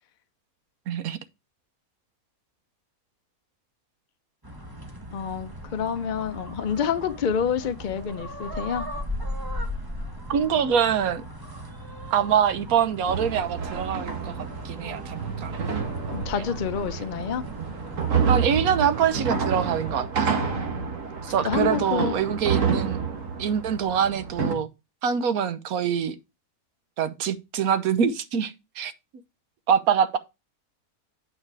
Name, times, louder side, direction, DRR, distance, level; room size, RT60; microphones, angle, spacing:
voice 1, 0.9-1.2 10.3-11.2 12.1-14.4 14.6-15.6 18.3-20.5 21.2-23.0 23.4-24.7 25.0-26.2 27.0-28.9 29.7-30.2, right 8 dB, 75° right, 1.3 m, -24 dB
sound 1, 4.4-19.9, equal, 15° right, 1.3 m, -38 dB
voice 2, 5.1-8.9 16.1-17.4 20.4-21.0 21.4-22.2, left 7 dB, 55° left, 0.5 m, -28 dB
sound 2, 13.1-24.5, right 6 dB, 60° right, 1.7 m, -29 dB
8.9 x 4.9 x 4.8 m
omnidirectional pair, 1.6 m